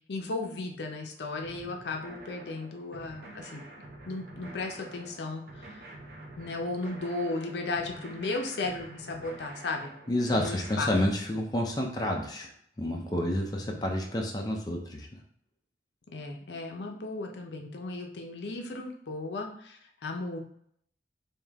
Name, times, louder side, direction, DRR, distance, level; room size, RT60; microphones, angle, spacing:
voice 1, 0.1-3.6 4.1-5.8 6.4-9.9 10.3-10.9 13.3-13.4 13.7-13.9 16.1-20.4, left 3 dB, 70° left, 2 dB, 0.6 m, -35 dB
sound 1, 1.4-11.1, right 2 dB, 60° right, 0.7 m, -47 dB
voice 2, 10.1-12.5 12.8-15.1, left 1 dB, 20° left, 0 dB, 0.5 m, -29 dB
3.6 x 2.7 x 3.4 m, 0.67 s
head